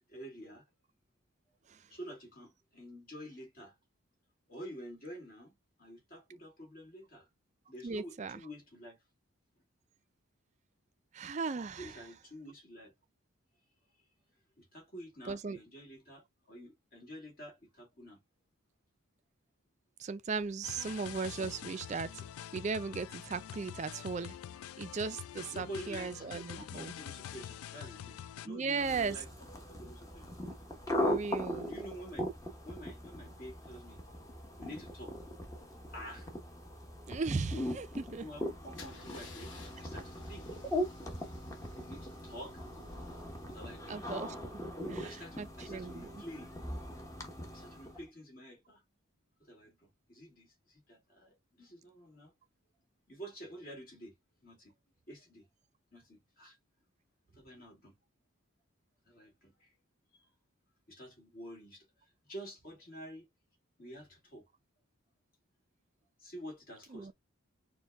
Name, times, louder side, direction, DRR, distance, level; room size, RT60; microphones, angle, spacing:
voice 1, 0.1-0.6 1.9-3.8 4.5-7.3 7.7-9.0 11.7-12.9 14.6-18.2 25.5-26.3 26.6-30.4 31.7-32.3 32.6-34.0 34.6-35.2 35.9-36.3 38.1-40.5 41.8-42.6 43.5-44.1 44.8-46.6 47.5-48.8 49.4-52.3 53.1-54.1 54.4-54.7 55.1-55.5 55.9-56.6 57.3-57.9 59.1-59.7 60.1-60.3 60.9-63.3 63.8-64.5 66.2-67.1, equal, 45° left, 2.0 m, -49 dB
voice 2, 7.8-8.4 11.1-12.0 15.3-15.6 20.0-22.2 22.5-24.4 24.8-26.9 28.5-29.2 31.0-31.7 37.1-38.3 43.9-44.3 44.9-46.2 66.9-67.1, right 4 dB, 35° right, 0.3 m, -37 dB
sound 1, 20.6-28.5, left 10 dB, 90° left, 0.3 m, -46 dB
sound 2, 28.7-48.0, equal, 15° left, 0.8 m, -40 dB
Car / Engine starting / Idling, 38.7-44.6, left 3 dB, 60° left, 0.8 m, -55 dB
4.4 x 2.2 x 3.4 m
head